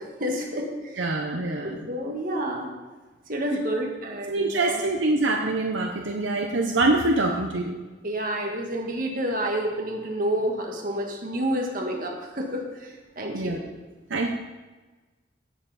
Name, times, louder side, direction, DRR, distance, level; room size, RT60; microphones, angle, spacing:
voice 1, 0.0-1.1 1.3-2.7 3.3-4.9 8.0-13.6, equal, 45° right, 0 dB, 1.8 m, -29 dB
voice 2, 1.0-1.7 4.3-7.7 13.3-13.6 14.1-14.3, right 2 dB, 75° right, 2 dB, 0.8 m, -24 dB
16.5 x 6.9 x 4.1 m, 1.2 s
head